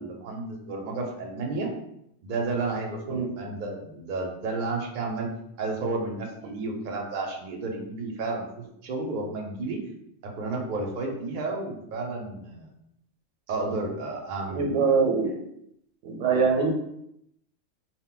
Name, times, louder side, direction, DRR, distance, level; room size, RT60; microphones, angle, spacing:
voice 1, 0.0-1.7 2.2-5.3 5.6-9.8 10.2-12.7 13.5-14.9, right 3 dB, 55° right, 1 dB, 0.6 m, -32 dB
voice 2, 14.5-15.3 16.0-16.7, right 5 dB, 80° right, 2 dB, 0.9 m, -23 dB
2.1 x 2.1 x 3.7 m, 0.77 s
omnidirectional pair, 1.3 m